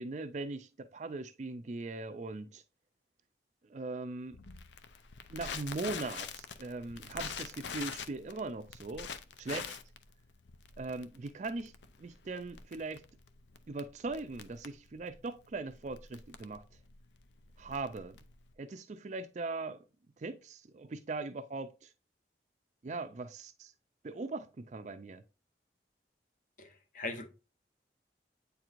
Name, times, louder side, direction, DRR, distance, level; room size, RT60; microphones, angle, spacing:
voice 1, 0.0-2.6 3.7-4.4 5.3-9.1 9.4-9.8 10.8-11.7 12.0-13.0 13.7-16.6 17.6-18.2 18.6-19.8 20.2-21.9 22.8-23.7 24.0-25.2, right 3 dB, 40° right, 0.4 m, -40 dB
Crackle, 4.3-18.5, left 6 dB, 85° left, 0.6 m, -45 dB
voice 2, 26.6-27.3, left 2 dB, 50° left, 0.9 m, -40 dB
8.6 x 4.5 x 2.5 m
head